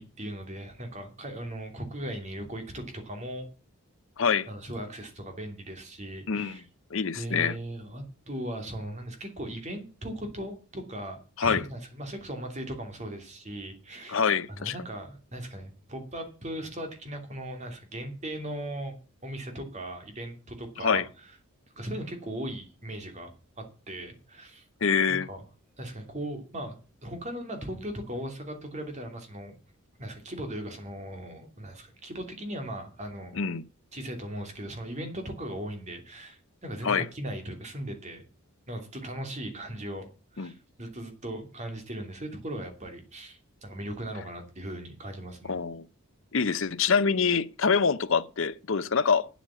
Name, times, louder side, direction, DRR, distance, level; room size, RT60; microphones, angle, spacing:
voice 1, 0.0-3.5 4.5-6.7 7.1-14.2 14.5-19.0 19.2-21.0 21.8-24.6 25.1-25.4 25.8-26.8 27.0-29.6 30.0-33.4 33.9-38.2 38.7-40.1 40.3-45.6, right 1 dB, 30° right, 2.7 m, -38 dB
voice 2, 4.2-4.5 6.3-6.6 6.9-7.6 11.4-11.6 14.1-14.7 20.8-21.1 24.8-25.3 33.3-33.6 36.8-37.1 40.4-40.5 45.5-45.9 46.3-49.3, left 6 dB, 60° left, 0.7 m, -25 dB
9.1 x 8.2 x 7.5 m
head